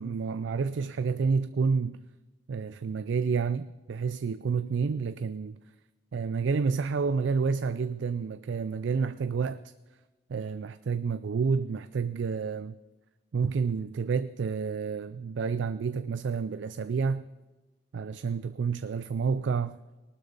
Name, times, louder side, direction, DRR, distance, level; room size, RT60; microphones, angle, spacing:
voice 1, 0.0-2.0 2.5-5.6 6.1-9.6 10.3-12.8 13.3-17.3 17.9-19.8, right 5 dB, 75° right, 0.4 m, -29 dB
19.0 x 12.0 x 4.0 m
head